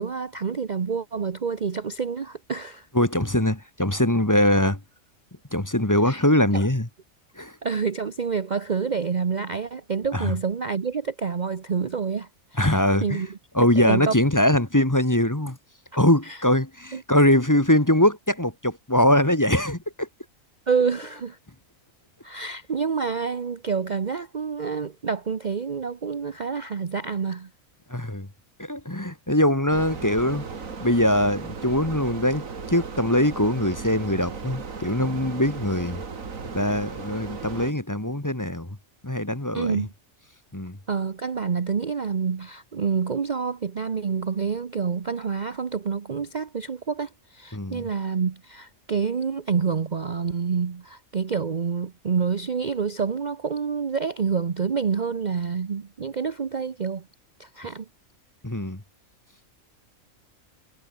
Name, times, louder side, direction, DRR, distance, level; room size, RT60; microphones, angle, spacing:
voice 1, 0.0-2.9 6.1-6.2 6.5-6.7 7.6-13.4 13.8-14.1 16.2-16.4 16.9-17.0 20.7-21.4 22.2-27.5 39.5-39.9 40.9-57.1 57.4-57.9, right 5 dB, 40° right, 0.9 m, -28 dB
voice 2, 2.9-4.8 5.5-6.9 7.4-7.5 10.1-10.3 12.6-13.2 13.5-15.6 16.0-20.1 27.9-28.3 28.6-30.4 30.8-36.0 36.5-38.8 39.0-39.9 40.5-40.8 47.5-47.9 58.4-58.8, left 1 dB, 15° left, 2.0 m, -22 dB
sound 1, 29.7-37.7, right 5 dB, 80° right, 2.5 m, -36 dB
omnidirectional pair, 1.4 m